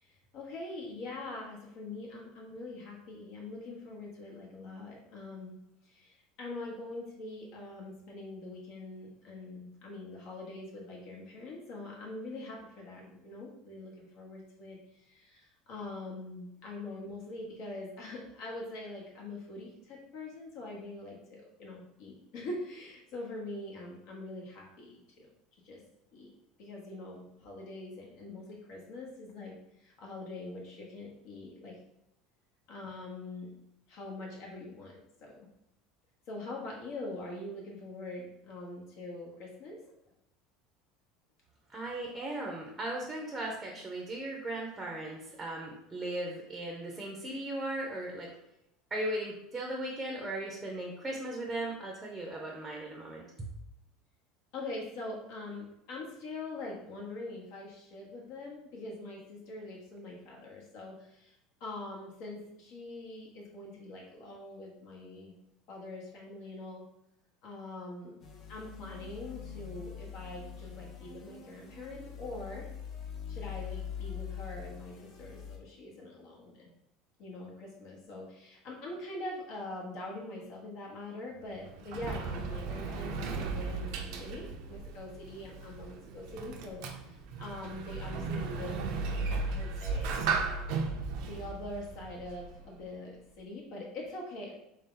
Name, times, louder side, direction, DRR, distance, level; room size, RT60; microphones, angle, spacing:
voice 1, 0.0-5.6 5.8-14.8 15.1-25.3 25.6-25.8 26.1-26.3 26.6-31.8 32.7-33.5 33.9-35.5 36.3-39.9 54.5-65.3 65.7-66.8 67.4-68.2 68.5-72.7 73.3-76.7 77.2-88.8 89.1-89.2 89.5-90.4 91.2-94.5, left 2 dB, 60° left, -2 dB, 0.9 m, -43 dB
voice 2, 41.7-48.3 48.9-53.5, right 1 dB, 10° right, -1 dB, 0.6 m, -37 dB
sound 1, 68.2-75.6, left 8 dB, 35° left, 0.6 m, -43 dB
Sliding door, 81.4-92.8, right 4 dB, 60° right, 0.5 m, -36 dB
3.5 x 2.7 x 3.7 m, 0.83 s
supercardioid pair, 140°, 0 cm